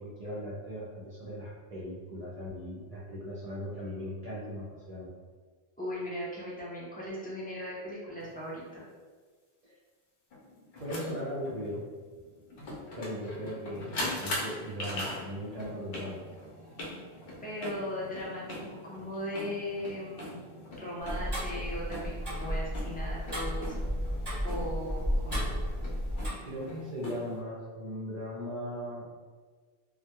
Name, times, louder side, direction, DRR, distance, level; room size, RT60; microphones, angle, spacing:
voice 1, 0.0-5.1 9.6-9.7 10.8-11.8 13.0-16.2 26.4-29.1, equal, 50° right, -6 dB, 0.5 m, -38 dB
voice 2, 5.8-8.8 17.4-20.4 20.8-23.7 24.4-25.5, equal, 15° left, -7 dB, 0.3 m, -38 dB
sound 1, 8.2-8.3 10.3-27.4, left 1 dB, 65° left, 0.7 m, -42 dB
Tick-tock, 21.0-26.3, equal, 25° right, 0.9 m, -33 dB
2.2 x 2.1 x 2.8 m, 1.5 s
omnidirectional pair, 1.1 m